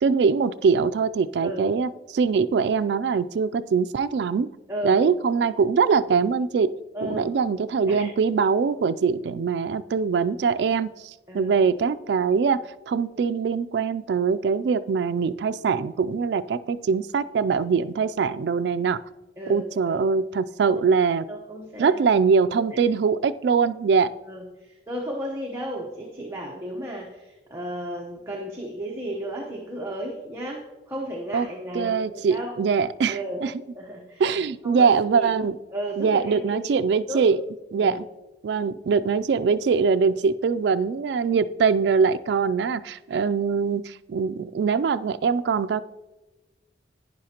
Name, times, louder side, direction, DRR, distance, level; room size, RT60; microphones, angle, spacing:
voice 1, 0.0-4.5 4.8-6.7 7.0-19.0 19.5-21.3 21.8-24.1 31.3-31.5 31.7-33.5 34.2-35.6 36.0-37.4 37.7-38.1 38.4-45.8, right 5 dB, 70° right, 11 dB, 0.3 m, -23 dB
voice 2, 4.7-5.0 6.9-7.3 7.9-8.1 11.3-11.6 19.4-20.1 21.3-22.0 24.3-32.5 33.1-33.4 33.7-34.2 34.6-35.3 35.7-36.7 37.1-37.2 37.8-38.0, right 1 dB, 15° right, -1 dB, 0.9 m, -34 dB
11.0 x 9.8 x 2.9 m, 1.1 s
head